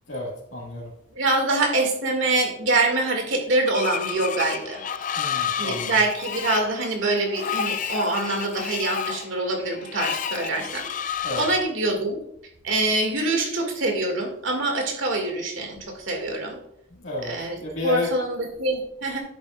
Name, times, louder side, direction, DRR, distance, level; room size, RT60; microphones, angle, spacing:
voice 1, 0.1-0.9 5.2-5.9 11.2-11.5 17.0-17.3 17.6-18.1, left 2 dB, 80° left, -6 dB, 1.8 m, -31 dB
voice 2, 1.2-4.8 5.6-12.2 12.6-16.6 17.2-19.2, right 2 dB, 80° right, 3 dB, 2.1 m, -25 dB
Screech, 3.7-11.6, left 8 dB, 40° left, 0.4 m, -30 dB
10.5 x 8.2 x 2.4 m, 0.73 s
head